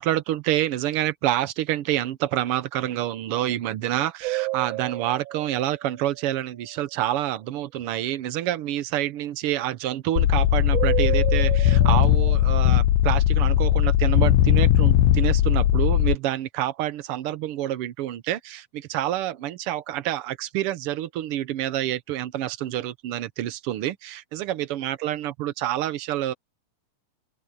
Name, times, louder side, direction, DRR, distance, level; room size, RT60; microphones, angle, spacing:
voice 1, 0.0-26.3, right 13 dB, 80° right, 1.2 m, -27 dB
sound 1, 4.2-6.7 10.7-12.3, right 19 dB, 60° right, 2.2 m, -31 dB
sound 2, 10.2-16.1, left 12 dB, 80° left, 2.3 m, -19 dB
open air
omnidirectional pair, 3.6 m